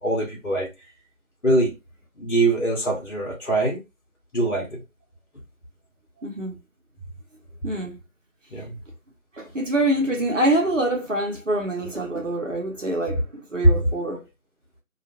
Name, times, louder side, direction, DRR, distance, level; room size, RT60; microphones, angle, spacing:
voice 1, 0.0-0.7 1.4-1.7 2.2-3.8 4.3-4.8 8.5-8.8, right 2 dB, 55° left, 1.0 m, -23 dB
voice 2, 6.2-6.6 7.6-8.0 9.3-14.3, right 1 dB, 60° right, 0.8 m, -25 dB
2.4 x 2.1 x 2.8 m
figure-of-eight pair, 165°, 43 cm